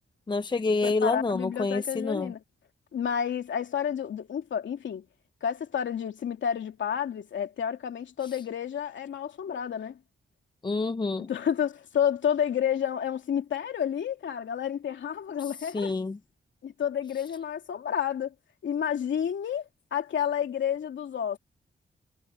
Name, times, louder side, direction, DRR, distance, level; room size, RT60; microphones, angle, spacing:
voice 1, 0.3-2.3 10.6-11.3 15.7-16.2, left 3 dB, 25° left, 0.7 m, -27 dB
voice 2, 0.8-2.4 2.9-5.1 5.4-10.0 11.2-15.9 16.6-18.3 18.6-21.4, left 8 dB, 80° left, 2.8 m, -30 dB
wide cardioid pair, 105°, 19 cm